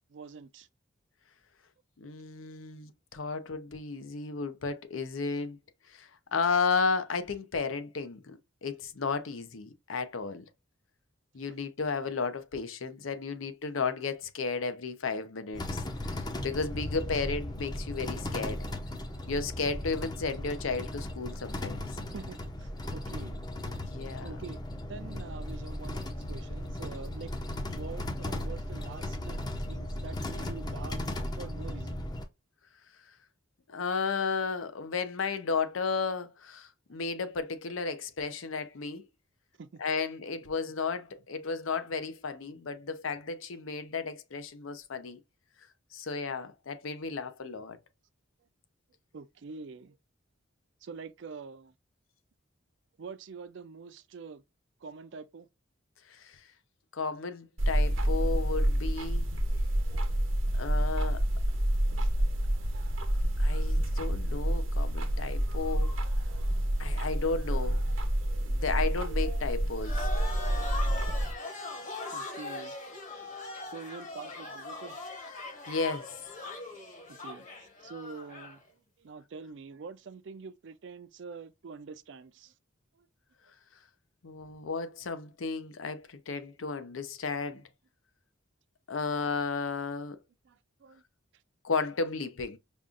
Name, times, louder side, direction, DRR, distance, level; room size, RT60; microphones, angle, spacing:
voice 1, 0.1-0.7 22.1-23.4 24.2-24.6 24.9-27.3 27.7-29.4 29.7-31.0 31.4-32.1 39.6-39.8 46.0-46.1 49.1-50.0 50.8-51.7 53.0-54.4 54.8-55.5 60.3-60.6 61.5-62.1 66.8-67.1 72.0-72.7 73.7-75.0 77.2-82.5 82.9-83.1 90.4-91.0, right 4 dB, 60° right, 0.4 m, -46 dB
voice 2, 2.0-5.6 5.9-10.4 11.3-15.8 16.1-18.7 19.3-22.0 23.9-24.4 33.7-39.0 39.8-45.2 45.9-47.8 56.1-56.4 56.9-59.3 60.6-61.2 63.4-65.9 66.8-67.8 68.5-70.1 75.7-76.2 84.2-87.6 88.9-90.2 91.6-92.6, left 4 dB, 85° left, 0.6 m, -33 dB
sound 1, 15.5-32.2, left 1 dB, 20° left, 0.5 m, -36 dB
sound 2, 57.6-71.3, right 1 dB, 80° right, 0.9 m, -28 dB
sound 3, 69.8-78.6, left 2 dB, 40° left, 1.1 m, -40 dB
5.3 x 2.4 x 2.4 m
head